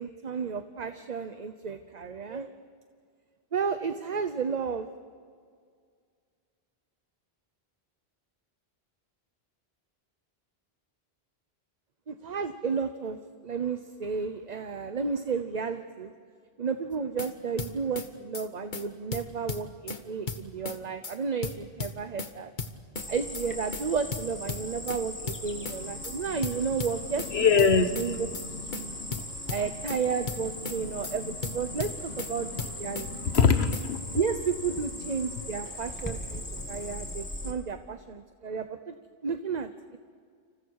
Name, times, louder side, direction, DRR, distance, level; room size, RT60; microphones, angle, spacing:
voice 1, 0.0-2.5 3.5-4.9 12.1-13.2 13.4-16.1 16.6-22.5 23.1-27.7 28.0-28.3 28.7-29.0 29.5-33.1 34.1-38.9 39.2-40.0, right 5 dB, 45° right, 9 dB, 0.9 m, -32 dB
sound 1, 16.9-17.3 17.6-18.1 18.3-18.5 18.7-18.8 19.1-20.0 20.3-20.8 21.0-21.2 21.4-22.3 22.6-23.1 23.3-23.5 23.7-23.8 24.1-25.0 25.3-25.8 26.0-26.2 26.4-27.3 27.6-28.1 28.3-28.5 28.7-28.8 29.1-30.0 30.3-30.8 31.0-31.2 31.4-32.3 32.6-33.1 33.3-33.5 33.7-33.8, left 4 dB, 50° left, 1.4 m, -35 dB
Cricket, 22.9-37.5, left 1 dB, 20° left, 2.6 m, -40 dB
voice 2, 27.3-29.2 30.4-31.3 31.7-31.8 32.3-34.2, left 5 dB, 80° left, 10 dB, 1.5 m, -27 dB
30.0 x 27.5 x 4.8 m, 2.1 s
omnidirectional pair, 1.1 m